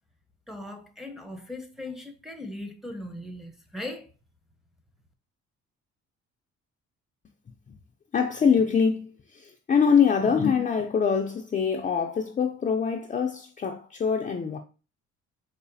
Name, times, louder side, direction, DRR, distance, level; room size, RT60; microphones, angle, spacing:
voice 1, 0.5-4.1, left 1 dB, ahead, 0.7 m, -39 dB
voice 2, 8.1-14.6, left 6 dB, 25° left, 0.4 m, -24 dB
4.7 x 2.4 x 2.6 m
cardioid pair, 90°, 30 cm